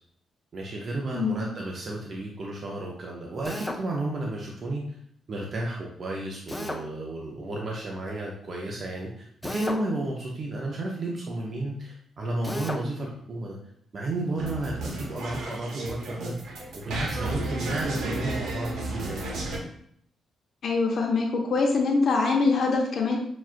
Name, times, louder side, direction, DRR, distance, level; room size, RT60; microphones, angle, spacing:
voice 1, 0.5-4.8 5.3-13.6 13.9-19.3, right 2 dB, 40° right, -2 dB, 0.6 m, -32 dB
Drill, 3.4-3.8 6.5-6.8 9.4-9.9 12.4-12.8, left 1 dB, 10° left, 0.3 m, -33 dB
sound 1, 14.4-19.6, right 2 dB, 90° right, 0.8 m, -33 dB
voice 2, 20.6-23.2, left 4 dB, 55° left, 0 dB, 0.6 m, -24 dB
5.9 x 2.4 x 2.4 m, 0.67 s
wide cardioid pair, 155°, 0 cm